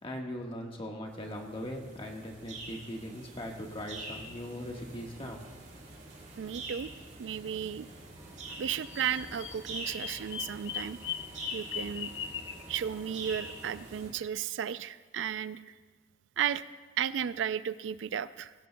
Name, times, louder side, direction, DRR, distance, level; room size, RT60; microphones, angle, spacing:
voice 1, 0.0-5.4, equal, 30° left, 1 dB, 1.5 m, -40 dB
sound 1, 1.1-14.1, right 2 dB, 45° right, 3.8 m, -46 dB
voice 2, 6.4-6.9 7.2-7.9 8.5-11.0 11.5-12.1 12.7-15.7 16.4-16.6 17.0-18.5, right 8 dB, 80° right, 15 dB, 0.4 m, -34 dB
Vehicle, 8.2-13.8, right 1 dB, 15° right, 1.4 m, -58 dB
Bird vocalization bird call bird song, 8.8-12.6, left 8 dB, 70° left, 0.6 m, -39 dB
17.0 x 16.5 x 2.3 m, 1.3 s
head